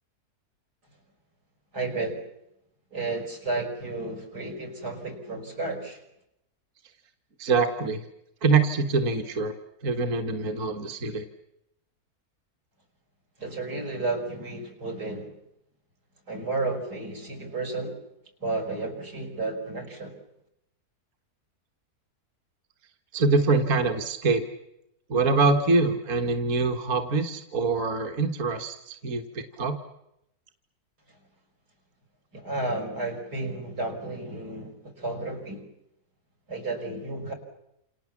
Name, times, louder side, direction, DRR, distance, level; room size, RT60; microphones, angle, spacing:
voice 1, 1.7-2.2 2.9-6.0 13.4-15.3 16.3-18.0 18.4-20.2 32.3-35.6 36.5-37.3, right 2 dB, 85° right, 1 dB, 5.8 m, -32 dB
voice 2, 7.4-8.1 8.4-9.5 9.8-11.2 23.1-24.4 25.1-29.8, right 4 dB, 55° right, 5 dB, 1.8 m, -24 dB
28.5 x 28.0 x 7.3 m, 0.85 s
omnidirectional pair, 1.7 m